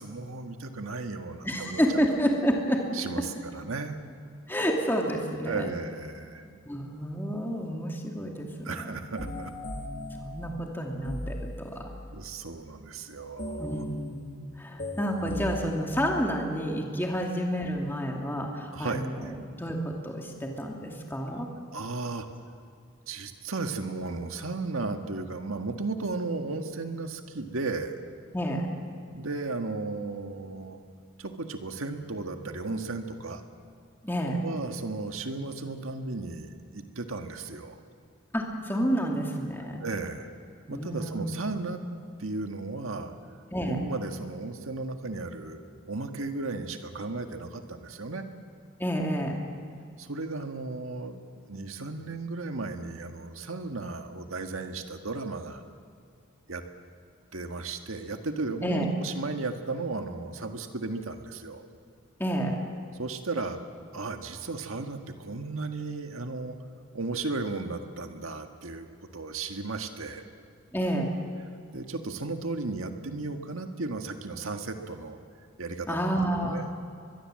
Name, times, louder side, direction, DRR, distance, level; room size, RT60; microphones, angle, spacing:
voice 1, 0.0-1.8 2.1-2.3 2.9-4.0 5.5-6.5 8.6-9.6 12.1-13.9 18.7-19.3 21.7-22.3 23.1-28.0 29.1-30.8 31.2-33.4 34.4-37.8 39.8-40.3 40.7-41.8 42.2-43.2 43.6-45.6 45.9-48.2 50.0-51.2 51.5-55.6 56.5-56.6 57.3-61.6 63.0-63.6 63.9-66.6 66.9-68.9 69.1-70.3 71.7-75.2 75.6-76.1 76.4-76.7, right 3 dB, 85° right, 6 dB, 1.7 m, -35 dB
voice 2, 1.4-2.8 4.5-5.7 6.6-8.7 10.2-11.9 13.6-19.3 19.5-21.5 28.3-28.7 34.0-34.4 38.3-39.8 40.7-41.4 43.5-43.8 48.8-49.4 58.6-58.9 62.2-62.6 70.7-71.1 75.9-76.7, equal, 10° left, 0 dB, 2.4 m, -29 dB
sound 1, 9.2-12.2 13.4-16.7, left 1 dB, 40° left, 2.2 m, -38 dB
23.5 x 21.5 x 7.7 m, 2.3 s
head